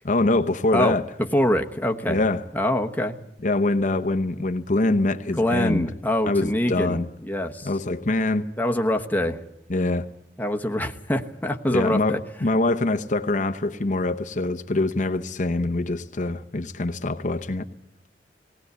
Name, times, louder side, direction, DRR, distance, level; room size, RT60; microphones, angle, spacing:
voice 1, 0.0-1.0 2.1-2.4 3.4-5.9 6.3-7.1 7.6-8.5 9.7-10.1 11.7-17.6, left 2 dB, 45° left, 0.9 m, -24 dB
voice 2, 1.3-2.2 2.5-3.2 5.4-7.7 8.6-9.4 10.4-12.2, left 1 dB, 10° left, 1.1 m, -24 dB
19.5 x 18.5 x 8.1 m
head